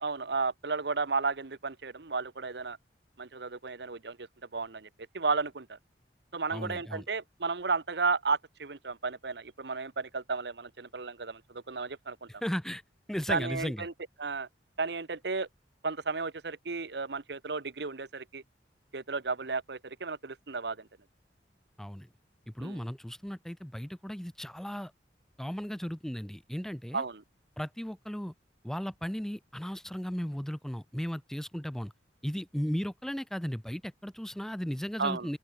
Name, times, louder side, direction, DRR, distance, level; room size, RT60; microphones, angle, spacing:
voice 1, 0.0-2.8 3.2-4.3 4.5-4.9 5.1-5.8 6.3-12.3 13.3-13.9 14.2-14.5 14.8-15.5 15.8-18.4 18.9-20.9 22.6-22.9 26.9-27.2 35.0-35.4, right 4 dB, 65° right, 1.1 m, -33 dB
voice 2, 6.5-7.1 12.3-12.8 13.1-13.9 21.8-22.1 22.5-24.9 25.4-27.0 27.6-28.3 28.6-31.9 32.2-35.4, equal, 5° left, 0.4 m, -36 dB
open air
head